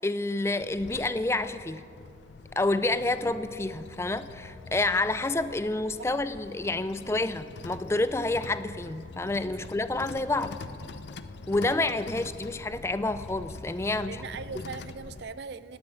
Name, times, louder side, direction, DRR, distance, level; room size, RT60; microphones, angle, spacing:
voice 1, 0.0-1.9 2.6-10.6 11.5-14.2 14.6-14.7, left 2 dB, 15° left, 13 dB, 0.4 m, -29 dB
sound 1, 0.6-15.3, left 3 dB, 75° left, 0.6 m, -44 dB
voice 2, 6.9-7.2 9.6-9.7 14.1-15.8, right 5 dB, 70° right, 16 dB, 0.5 m, -40 dB
18.0 x 8.8 x 8.7 m, 2.5 s
head